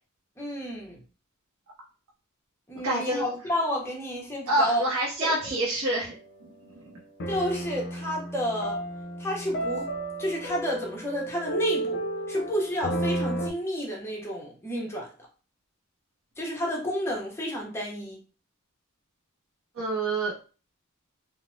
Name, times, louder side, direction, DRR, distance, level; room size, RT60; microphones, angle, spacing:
voice 1, 0.4-1.0 2.7-4.9 5.2-5.6 7.3-8.8 9.2-9.9 10.2-12.0 12.3-15.1 16.4-18.2, equal, 10° left, -2 dB, 0.7 m, -31 dB
voice 2, 2.8-3.4 4.5-6.1 6.4-6.9 19.8-20.3, right 1 dB, 70° right, -3 dB, 0.6 m, -27 dB
sound 1, 6.1-6.4 7.2-13.5, right 1 dB, 50° left, 0.4 m, -32 dB
3.1 x 2.0 x 2.6 m, 0.36 s
head